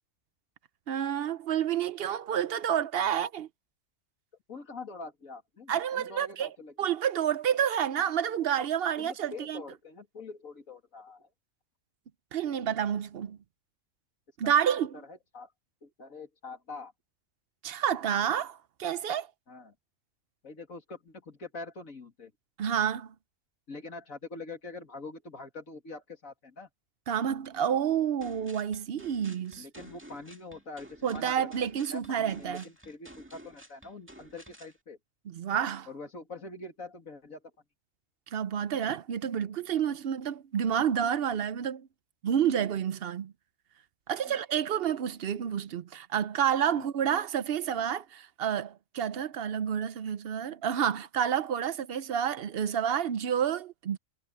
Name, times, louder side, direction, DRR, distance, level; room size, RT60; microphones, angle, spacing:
voice 1, 0.9-3.5 5.7-6.5 6.8-9.6 12.3-13.4 14.4-15.0 17.6-19.3 22.6-23.1 27.1-29.6 31.0-32.6 35.3-35.9 38.3-41.9 42.2-43.3 44.1-54.0, right 9 dB, 55° right, 0.7 m, -29 dB
voice 2, 4.5-6.9 8.9-11.3 14.4-14.5 14.9-15.5 15.8-16.9 19.5-19.7 20.4-22.3 23.7-26.7 29.6-35.0 35.9-37.4 40.0-40.1 44.2-44.4 46.7-46.9, left 3 dB, 90° left, 3.1 m, -44 dB
sound 1, 28.2-34.8, right 1 dB, 10° right, 2.1 m, -52 dB
omnidirectional pair, 1.4 m